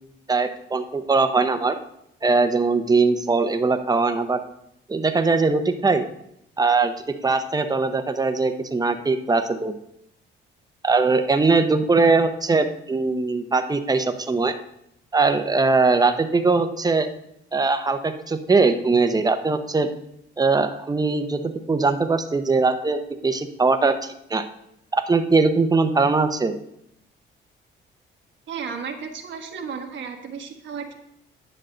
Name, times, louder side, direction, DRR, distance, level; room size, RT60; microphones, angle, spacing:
voice 1, 0.3-1.8 2.2-4.4 4.9-6.0 6.6-6.9 7.2-9.7 10.8-14.5 15.1-17.1 17.5-19.9 20.4-24.4 24.9-26.5, right 3 dB, 20° right, 8 dB, 0.8 m, -21 dB
voice 2, 28.5-30.9, right 6 dB, 70° right, 4 dB, 1.3 m, -33 dB
10.0 x 6.6 x 3.8 m, 0.77 s
cardioid pair, 90°, 20 cm